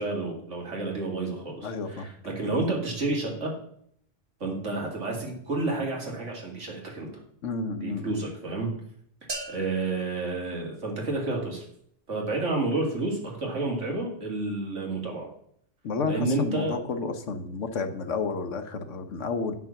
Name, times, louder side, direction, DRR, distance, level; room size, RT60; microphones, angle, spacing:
voice 1, 0.0-3.5 4.4-7.1 7.8-8.7 9.5-11.6 12.1-15.3 16.1-16.8, right 3 dB, 80° right, 0 dB, 2.7 m, -30 dB
voice 2, 1.6-2.1 7.4-8.2 15.8-19.5, left 4 dB, 85° left, 8 dB, 1.3 m, -31 dB
sound 1, 9.3-11.3, right 2 dB, 45° right, 2.0 m, -41 dB
9.6 x 6.1 x 5.8 m, 0.66 s
omnidirectional pair, 1.2 m